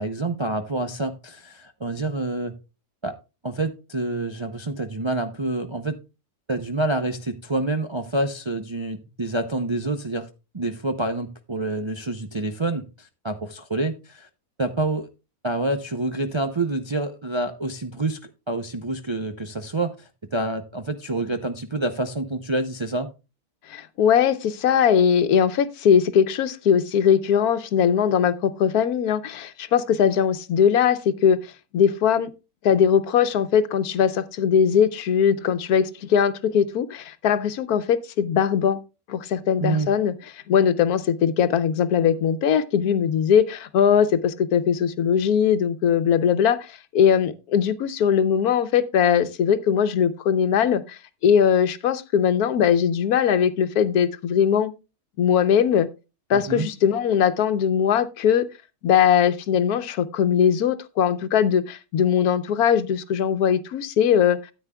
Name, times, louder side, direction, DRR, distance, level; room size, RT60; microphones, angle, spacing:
voice 1, 0.0-2.5 3.0-3.1 3.4-6.0 6.5-10.3 10.5-14.3 14.6-15.1 15.4-23.1 39.6-39.9 56.3-56.7, right 2 dB, 40° right, 0.4 m, -27 dB
voice 2, 23.7-31.4 31.7-32.3 32.6-38.8 39.1-40.1 40.5-54.7 55.2-55.9 56.3-58.5 58.8-64.4, left 8 dB, 80° left, 1.3 m, -20 dB
13.5 x 9.0 x 2.3 m
omnidirectional pair, 1.6 m